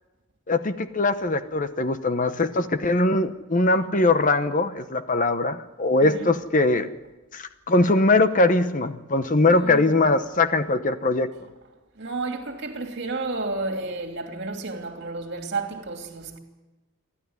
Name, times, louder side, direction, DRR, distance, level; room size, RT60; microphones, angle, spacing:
voice 1, 0.5-6.9 7.3-11.3, left 2 dB, 35° left, 0.9 m, -21 dB
voice 2, 6.0-6.3 9.5-9.9 12.0-16.4, right 3 dB, 50° right, 2.9 m, -31 dB
28.5 x 12.0 x 9.6 m
head